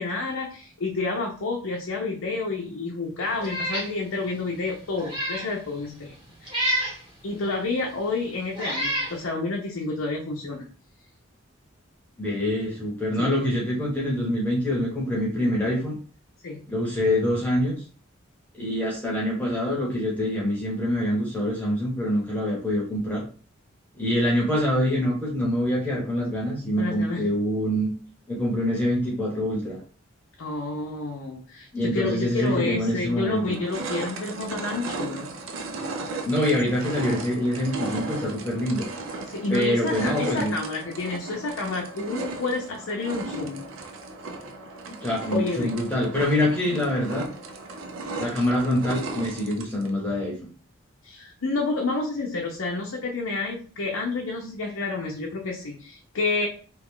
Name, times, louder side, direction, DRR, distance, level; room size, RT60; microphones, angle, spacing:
voice 1, 0.0-6.1 6.4-6.7 7.2-10.7 13.2-13.4 16.4-16.6 26.8-27.3 30.4-35.3 39.3-43.6 45.3-45.7 46.6-46.8 51.0-56.5, left 3 dB, 75° left, -1 dB, 0.6 m, -29 dB
Meow, 3.4-3.9 4.3-4.4 4.9-5.5 6.5-7.0 7.9-8.0 8.5-9.1, equal, 25° right, 1.1 m, -28 dB
voice 2, 12.2-16.0 16.7-17.8 18.6-23.2 24.0-27.9 28.3-29.8 31.7-33.6 36.2-38.9 39.5-40.5 45.0-47.3 48.1-50.5, left 1 dB, 10° left, -5 dB, 0.9 m, -25 dB
sound 1, 32.5-32.6 33.1-49.9, right 2 dB, 70° right, 0.5 m, -36 dB
2.9 x 2.3 x 3.6 m, 0.39 s
head